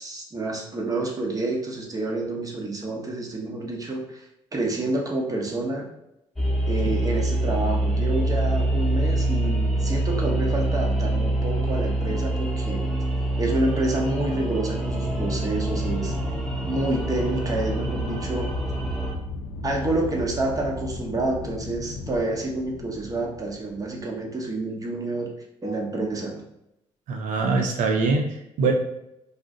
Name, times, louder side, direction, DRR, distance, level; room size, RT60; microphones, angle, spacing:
voice 1, 0.0-5.9 6.7-12.9 13.4-16.1 16.7-18.5 19.6-25.3 25.6-26.4, right 2 dB, 30° right, 0 dB, 0.8 m, -28 dB
sound 1, 6.4-19.1, right 1 dB, 5° left, 0.9 m, -25 dB
Aircraft, 14.8-24.2, left 3 dB, 80° left, 0.4 m, -36 dB
voice 2, 27.1-28.7, right 4 dB, 75° right, 2 dB, 0.6 m, -23 dB
2.5 x 2.1 x 3.7 m, 0.83 s
supercardioid pair, 70°, 13 cm